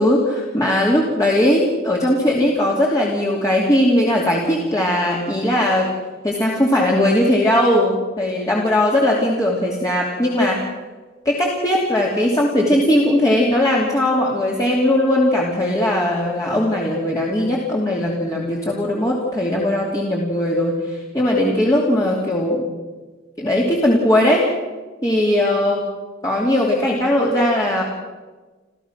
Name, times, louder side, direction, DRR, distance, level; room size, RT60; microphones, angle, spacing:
voice 1, 0.0-5.9 6.2-10.6 11.2-22.7 23.4-24.5 25.0-25.9 26.2-27.8, left 1 dB, 20° left, -3 dB, 2.8 m, -19 dB
28.5 x 14.5 x 6.3 m, 1.3 s
head